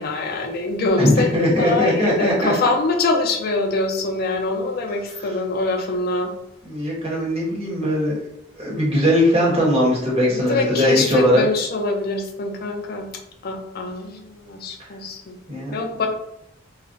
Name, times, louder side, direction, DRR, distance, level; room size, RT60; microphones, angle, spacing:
voice 1, 0.0-6.3 10.3-13.1 13.4-15.4 15.7-16.1, left 3 dB, 50° left, 3 dB, 0.5 m, -24 dB
voice 2, 1.0-2.7 6.6-8.1 8.6-11.4 15.5-15.7, equal, 30° right, -5 dB, 1.1 m, -19 dB
2.4 x 2.1 x 3.9 m, 0.78 s
head